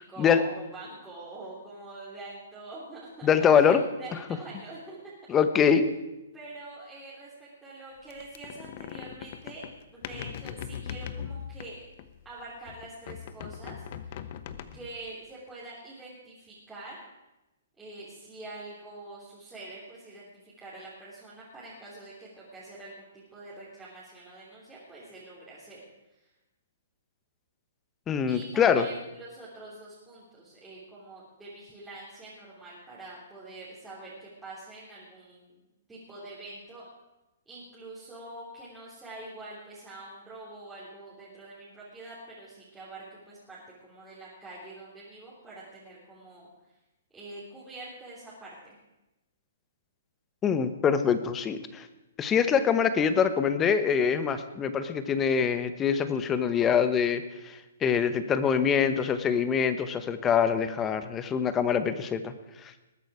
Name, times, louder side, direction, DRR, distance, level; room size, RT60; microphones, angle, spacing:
voice 1, 0.1-5.0 6.3-9.6 9.9-11.8 12.2-14.3 14.7-17.0 17.8-25.8 26.1-26.2 28.3-36.9 37.5-46.5 47.1-48.8, right 2 dB, 5° right, -9 dB, 3.4 m, -45 dB
voice 2, 3.2-3.8 5.3-5.9 28.1-28.8 50.4-51.9 52.2-62.3, left 7 dB, 15° left, 11 dB, 1.0 m, -24 dB
sound 1, 8.1-12.3 12.7-15.1, left 9 dB, 45° left, 0.9 m, -40 dB
20.5 x 9.1 x 4.9 m, 0.99 s
hypercardioid pair, 145°, 0 cm